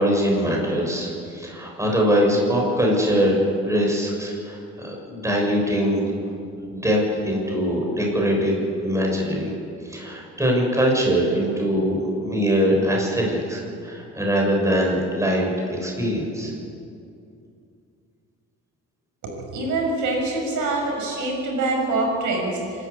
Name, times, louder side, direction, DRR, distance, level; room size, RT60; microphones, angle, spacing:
voice 1, 0.0-6.2 6.7-9.5 9.8-16.5, equal, 10° right, -1 dB, 6.9 m, -22 dB
voice 2, 19.2-22.9, right 2 dB, 80° right, 0 dB, 7.1 m, -25 dB
27.0 x 13.5 x 8.5 m, 2.5 s
cardioid pair, 90°, 30 cm